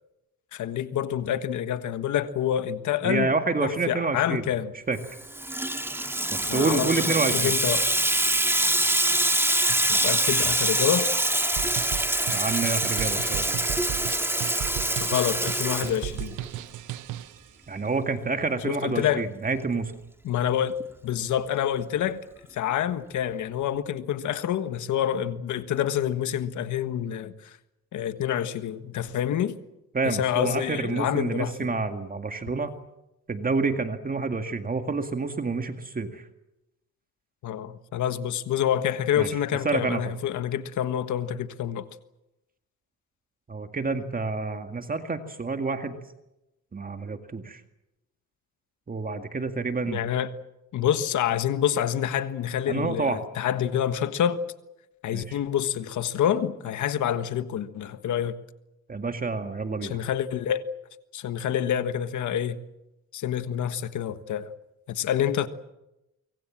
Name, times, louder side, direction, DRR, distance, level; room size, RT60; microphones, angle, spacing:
voice 1, 0.5-3.3 3.6-4.7 6.5-7.9 9.9-11.1 15.0-16.4 18.6-19.3 20.2-22.2 22.5-27.6 27.9-29.6 30.0-31.7 37.4-41.8 49.9-50.3 50.7-54.4 55.0-58.4 59.8-60.6 61.1-62.6 63.1-64.5 64.9-65.5, left 10 dB, 75° left, 1.5 m, -27 dB
voice 2, 3.0-4.4 4.9-5.0 6.3-7.5 12.3-13.6 17.7-19.9 29.9-32.7 33.3-36.2 39.2-39.3 39.6-40.0 43.5-46.0 46.7-47.6 48.9-50.0 52.7-53.2 55.1-55.4 58.9-60.0, right 4 dB, 30° right, 2.1 m, -28 dB
Water tap faucet / Sink (filling or washing), 5.0-16.5, right 1 dB, 10° right, 2.2 m, -25 dB
sound 1, 11.6-17.4, right 13 dB, 80° right, 1.1 m, -35 dB
24.5 x 24.0 x 7.5 m
cardioid pair, 90°, 30 cm